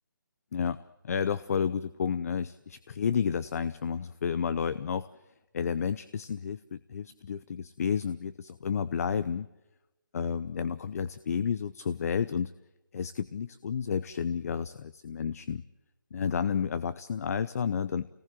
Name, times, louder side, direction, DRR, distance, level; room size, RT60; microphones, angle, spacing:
voice 1, 1.0-5.1 5.5-9.5 10.1-12.5 12.9-15.6 16.1-18.1, left 7 dB, 45° left, 16 dB, 0.7 m, -31 dB
27.5 x 19.0 x 7.7 m, 1.0 s
hypercardioid pair, 160°, 11 cm